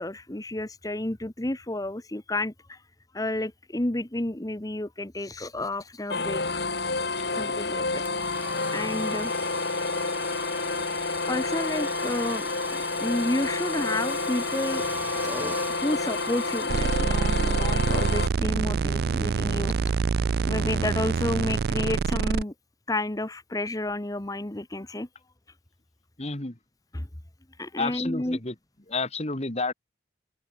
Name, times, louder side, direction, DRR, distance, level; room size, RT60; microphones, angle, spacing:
voice 1, 0.0-2.8 3.1-6.4 7.3-8.0 8.7-9.3 11.2-14.8 15.2-15.5 15.8-19.7 20.5-22.5 22.9-25.1 26.9-27.1 27.6-28.4, left 1 dB, 20° left, 1.1 m, -31 dB
sound 1, 6.1-18.3, left 3 dB, 60° left, 3.2 m, -29 dB
Domestic sounds home sounds, 8.0-17.2, right 2 dB, 10° right, 1.4 m, -41 dB
sound 2, 16.7-22.4, right 5 dB, 55° right, 0.4 m, -25 dB
voice 2, 26.2-26.6 27.8-28.5 28.9-29.7, left 3 dB, 35° left, 2.1 m, -30 dB
head